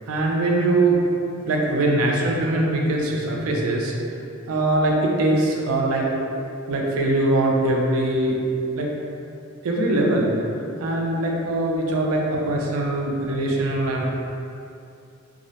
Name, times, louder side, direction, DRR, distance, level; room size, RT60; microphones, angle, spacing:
voice 1, 0.1-1.0 1.4-3.9 4.5-6.1 6.7-8.4 8.8-8.9 9.6-10.3 10.8-14.1, right 2 dB, 90° right, -1 dB, 0.4 m, -22 dB
2.3 x 2.0 x 2.7 m, 2.6 s
head